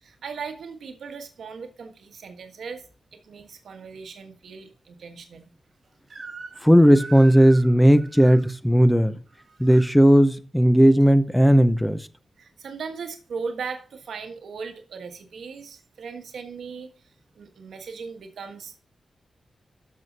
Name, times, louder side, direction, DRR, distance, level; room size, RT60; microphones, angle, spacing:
voice 1, 0.0-2.8 3.1-5.5 12.4-16.9 17.3-18.8, right 5 dB, 75° right, 1.4 m, -38 dB
Crying sobbing / Screech, 6.1-6.7 6.9-8.4 9.3-10.0, right 4 dB, 40° right, 3.4 m, -42 dB
voice 2, 6.6-9.1 9.6-12.0, equal, 5° left, 0.7 m, -16 dB
12.5 x 6.3 x 5.2 m
wide cardioid pair, 145°, 0 cm